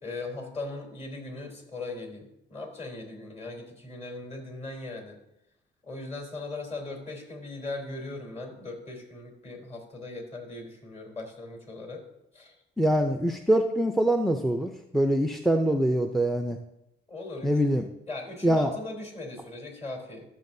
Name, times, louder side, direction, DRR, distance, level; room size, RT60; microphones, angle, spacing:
voice 1, 0.0-5.2 5.8-12.0 12.3-12.5 17.1-17.5 18.1-20.2, left 2 dB, 35° left, 0 dB, 3.5 m, -39 dB
voice 2, 12.8-16.6 17.4-17.9 18.4-18.7, right 1 dB, ahead, 4 dB, 0.6 m, -24 dB
13.5 x 7.4 x 2.7 m, 0.85 s
cardioid pair, 90°, 20 cm